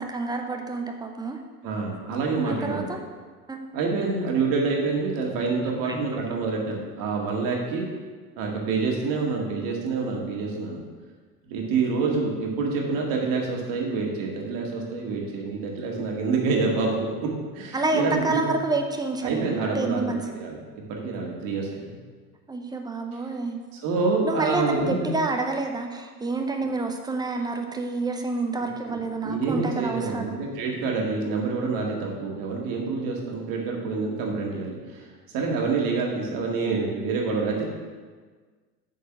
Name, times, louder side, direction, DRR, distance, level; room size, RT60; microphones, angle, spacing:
voice 1, 0.0-1.4 2.4-3.0 3.5-3.6 5.8-5.9 17.7-20.4 22.5-23.6 24.2-30.4, right 3 dB, 10° right, 3 dB, 0.7 m, -28 dB
voice 2, 1.6-2.9 3.7-7.8 8.4-10.8 11.5-18.6 19.2-22.0 23.8-25.2 28.6-35.1 35.3-37.7, right 4 dB, 45° right, -1 dB, 2.1 m, -27 dB
8.3 x 4.6 x 6.0 m, 1.5 s
figure-of-eight pair, 80°, 47 cm